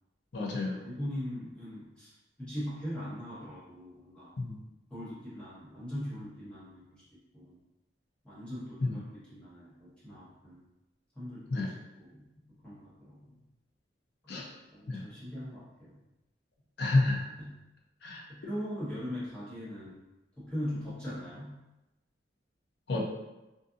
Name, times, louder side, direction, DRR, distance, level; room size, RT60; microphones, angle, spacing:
voice 1, 0.3-0.9 4.4-4.6 8.8-9.0 11.5-11.7 14.3-14.5 14.9-15.0 16.8-17.3 18.0-18.2 22.9-23.1, left 2 dB, 65° left, -1 dB, 0.5 m, -29 dB
voice 2, 0.8-4.3 4.9-7.0 7.3-7.6 8.2-10.6 11.1-12.2 12.6-13.4 14.7-16.0 17.4-17.6 18.3-20.0 20.4-21.6, equal, 5° left, -11 dB, 1.1 m, -40 dB
2.5 x 2.5 x 2.5 m, 1.0 s
head